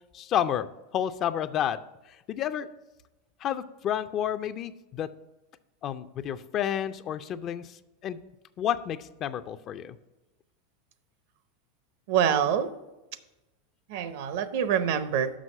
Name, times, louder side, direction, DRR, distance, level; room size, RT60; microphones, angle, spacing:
voice 1, 0.1-0.7 0.9-1.8 2.3-2.7 3.4-5.1 5.8-8.2 8.6-10.0, left 10 dB, 40° left, 12 dB, 0.4 m, -30 dB
voice 2, 12.1-12.7 13.9-15.3, right 8 dB, 65° right, 12 dB, 0.6 m, -25 dB
6.2 x 5.8 x 5.4 m, 1.0 s
supercardioid pair, 125°, 0 cm